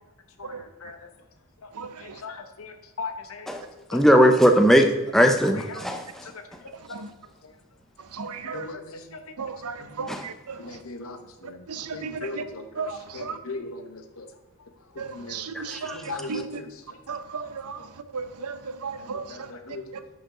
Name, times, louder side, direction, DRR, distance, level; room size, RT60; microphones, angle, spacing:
voice 1, 0.4-1.0 2.0-3.5 3.9-4.0 5.4-5.9 6.2-6.3 8.5-9.2 9.8-10.1 10.6-11.6 11.9-14.3 15.1-15.5 15.9-16.7 19.1-19.9, left 3 dB, 65° left, 7 dB, 0.9 m, -38 dB
voice 2, 1.7-2.2 6.9-7.1 8.1-8.7 9.4-10.6 11.7-12.2 12.8-13.4 15.0-16.4 17.1-17.9 18.1-19.5, right 5 dB, 85° right, 11 dB, 0.7 m, -35 dB
voice 3, 3.9-6.1 10.1-10.2 15.5-16.0, equal, ahead, 5 dB, 0.6 m, -19 dB
11.0 x 5.2 x 3.8 m, 1.1 s
head